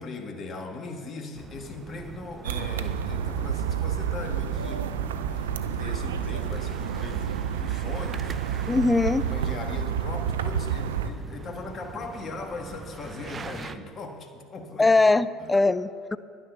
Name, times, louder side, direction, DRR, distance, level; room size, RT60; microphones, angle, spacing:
voice 1, 0.0-8.8 9.2-14.9 15.4-15.6, left 3 dB, 40° left, 3 dB, 1.6 m, -39 dB
sound 1, 1.3-13.8, right 5 dB, 35° right, 0.5 m, -43 dB
sound 2, 2.4-11.1, right 8 dB, 85° right, 0.5 m, -29 dB
voice 2, 8.7-9.2 14.8-16.2, left 3 dB, 15° left, 15 dB, 0.5 m, -21 dB
11.0 x 9.7 x 5.6 m, 2.2 s
hypercardioid pair, 70°, 0 cm